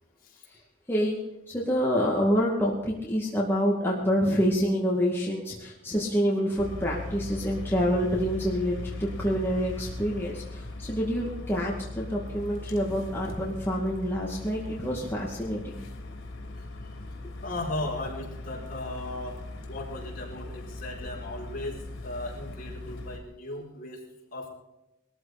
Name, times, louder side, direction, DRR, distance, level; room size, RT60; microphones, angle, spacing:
voice 1, 0.9-1.2 1.5-15.8, equal, 10° left, -4 dB, 2.4 m, -27 dB
sound 1, 6.6-23.2, left 2 dB, 75° left, 3.2 m, -39 dB
voice 2, 17.4-19.4 19.7-24.0 24.3-24.5, left 1 dB, 45° left, -1 dB, 4.4 m, -36 dB
21.0 x 14.0 x 4.3 m, 0.95 s
head